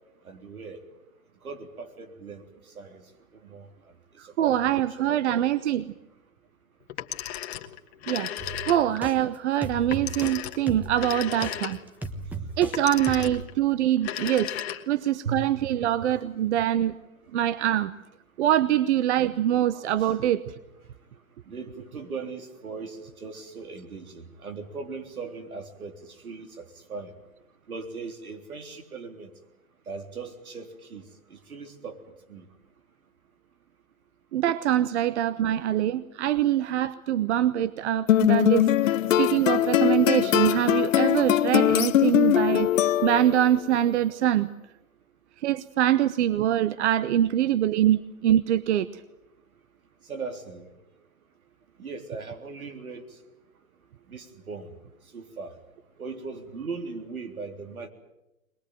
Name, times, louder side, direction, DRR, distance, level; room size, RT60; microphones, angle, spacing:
voice 1, 0.2-0.8 1.4-3.0 3.3-3.7 4.2-5.5 15.2-16.1 20.0-20.2 21.5-27.1 27.7-29.3 29.9-32.0 32.3-32.5 50.1-50.7 51.8-53.0 54.1-54.7 55.1-55.6 56.0-57.9, right 4 dB, 85° right, 4 dB, 3.7 m, -39 dB
voice 2, 4.4-5.9 8.1-8.3 8.6-11.8 12.6-14.5 14.9-16.9 17.3-17.9 18.4-20.4 34.3-44.5 45.4-48.9, right 11 dB, 55° right, 15 dB, 0.9 m, -24 dB
Telephone, 6.9-9.1 9.9-12.1 12.7-13.5 13.9-15.1, left 12 dB, 50° left, 1.8 m, -35 dB
sound 1, 8.4-9.2 9.6-10.4 10.7-12.8 13.1-13.5, right 2 dB, 5° right, 1.1 m, -36 dB
sound 2, 38.1-43.5, left 12 dB, 65° left, 0.8 m, -21 dB
22.0 x 20.5 x 9.1 m, 0.93 s
hypercardioid pair, 130°, 42 cm